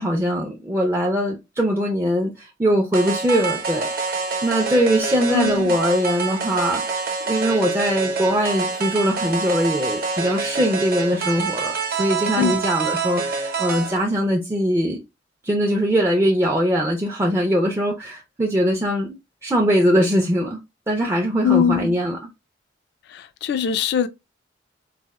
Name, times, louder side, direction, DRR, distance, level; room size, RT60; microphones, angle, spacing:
voice 1, 0.0-15.0 15.4-20.6 20.9-22.2, equal, 15° right, 0.4 m, -21 dB
sound 1, 2.9-14.0, right 4 dB, 50° right, 0.8 m, -26 dB
voice 2, 5.3-5.8 12.4-12.6 21.4-22.0 23.1-24.1, left 8 dB, 60° left, 0.3 m, -22 dB
4.0 x 2.0 x 2.2 m
head